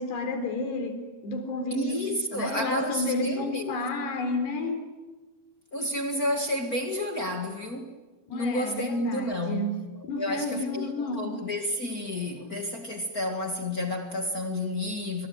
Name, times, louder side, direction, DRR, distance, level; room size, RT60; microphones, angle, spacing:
voice 1, 0.0-4.9 8.3-11.4, left 2 dB, 65° left, 5.9 m, -31 dB
voice 2, 1.7-3.7 5.7-7.9 8.3-9.8 10.2-15.3, left 1 dB, 50° left, 1.0 m, -31 dB
25.0 x 24.5 x 9.6 m
omnidirectional pair, 5.2 m